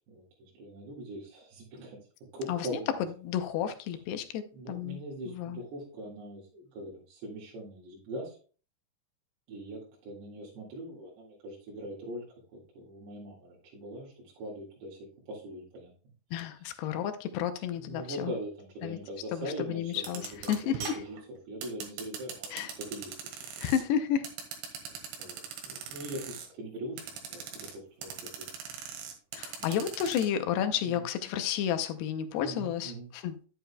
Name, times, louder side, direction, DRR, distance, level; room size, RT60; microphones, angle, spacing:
voice 1, 0.1-2.0 2.3-2.9 4.5-8.4 9.5-12.2 12.5-15.9 17.6-23.7 24.7-28.1 28.4-28.5 29.6-29.8 30.8-31.1 32.4-33.1, right 1 dB, 70° right, 4.1 m, -42 dB
voice 2, 2.5-5.0 5.3-5.6 16.3-18.3 18.8-19.0 19.3-21.0 22.5-22.7 23.6-24.3 29.3-33.4, left 9 dB, 75° left, 2.6 m, -32 dB
sound 1, 19.9-23.8 24.2-26.5 27.0-27.8 28.0-30.2, right 6 dB, 90° right, 3.9 m, -40 dB
10.5 x 9.1 x 2.3 m
omnidirectional pair, 5.1 m